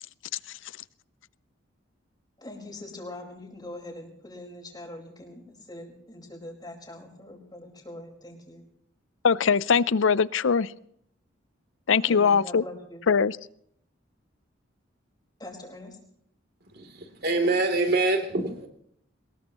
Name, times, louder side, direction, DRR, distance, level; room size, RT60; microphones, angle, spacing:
voice 1, 2.4-8.6 12.1-13.0 15.4-16.0, left 1 dB, 20° left, 1 dB, 4.8 m, -42 dB
voice 2, 9.2-10.7 11.9-12.6 13.1-13.4, left 6 dB, 80° left, 19 dB, 0.5 m, -21 dB
voice 3, 16.7-18.7, right 2 dB, 55° right, 5 dB, 3.1 m, -25 dB
23.0 x 20.5 x 3.0 m, 0.68 s
head